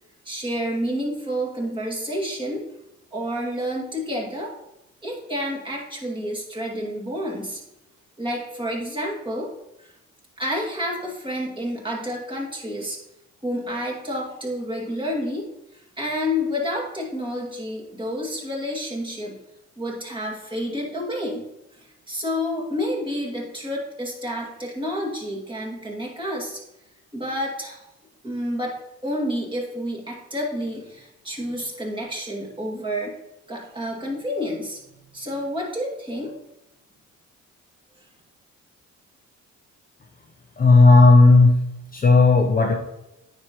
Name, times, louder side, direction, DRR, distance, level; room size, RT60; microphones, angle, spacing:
voice 1, 0.3-2.6 3.1-4.5 5.0-7.6 8.2-9.5 9.8-9.9 10.4-13.0 13.4-19.4 19.8-21.4 21.7-26.6 27.1-27.8 28.2-28.8 29.0-33.1 33.5-34.8 35.1-36.3, equal, 15° right, -3 dB, 2.2 m, -29 dB
voice 2, 40.6-41.5 41.9-42.7, left 3 dB, 30° left, 1 dB, 0.7 m, -13 dB
9.2 x 5.1 x 3.0 m, 0.90 s
cardioid pair, 90°, 30 cm